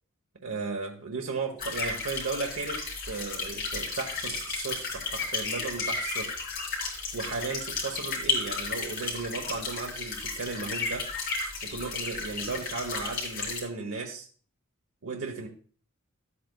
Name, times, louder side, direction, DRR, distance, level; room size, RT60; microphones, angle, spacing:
voice 1, 0.4-6.3 7.1-11.1 11.6-14.3 15.0-15.5, right 4 dB, 90° right, 2 dB, 1.0 m, -35 dB
sound 1, 1.6-13.6, left 4 dB, 45° left, 3.8 m, -33 dB
13.5 x 8.4 x 2.3 m, 0.43 s
head